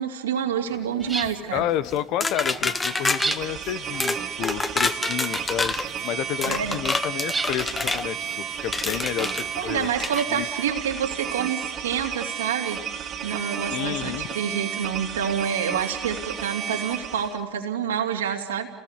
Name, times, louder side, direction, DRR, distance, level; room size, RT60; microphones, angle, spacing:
voice 1, 0.0-1.7 6.4-6.8 9.6-12.8 13.2-18.7, right 8 dB, 90° right, 2 dB, 2.9 m, -28 dB
sound 1, 0.7-10.5, right 3 dB, 15° right, 1.8 m, -38 dB
voice 2, 1.5-5.7 6.0-9.3 9.6-9.9 10.3-10.5 13.7-14.3, left 11 dB, 60° left, 15 dB, 1.3 m, -30 dB
sound 2, 2.2-3.4 4.0-4.2 4.4-5.9 6.4-8.0 8.7-9.4 10.0-10.2, left 3 dB, 20° left, 1.3 m, -26 dB
sound 3, 2.6-17.4, right 8 dB, 45° right, 2.3 m, -33 dB
30.0 x 19.5 x 8.3 m, 1.1 s
hypercardioid pair, 80°, 0 cm